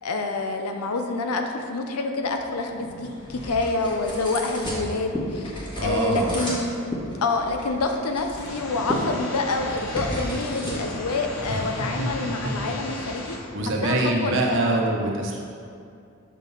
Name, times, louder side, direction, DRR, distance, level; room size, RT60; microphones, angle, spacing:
voice 1, 0.0-5.5 5.8-6.7 7.2-13.4 13.8-14.8, left 3 dB, 85° left, 4 dB, 0.6 m, -27 dB
sound 1, 2.2-12.4, equal, 20° left, 1.4 m, -34 dB
voice 2, 5.8-6.4 11.5-11.7 12.0-12.5 13.5-15.4, right 2 dB, 55° right, -1 dB, 0.9 m, -25 dB
sound 2, 8.4-13.4, left 1 dB, 55° left, 1.2 m, -36 dB
6.4 x 3.9 x 5.3 m, 2.4 s
head